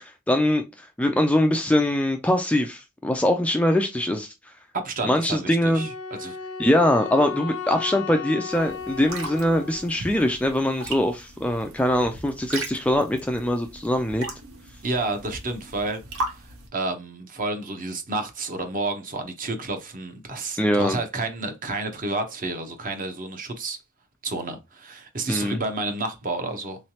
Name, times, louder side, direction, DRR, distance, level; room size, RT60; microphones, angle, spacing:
voice 1, 0.0-4.3 5.0-5.9 6.6-14.3 20.6-21.0 25.3-25.6, left 1 dB, 5° left, 0.3 m, -22 dB
voice 2, 4.7-5.9 6.2-6.4 14.8-23.8 24.2-26.8, right 2 dB, 40° right, 0.8 m, -30 dB
Wind instrument woodwind instrument, 5.7-10.0, left 6 dB, 70° left, 0.6 m, -35 dB
sound 1, 8.5-16.7, right 2 dB, 75° right, 1.0 m, -38 dB
3.8 x 3.1 x 2.8 m
head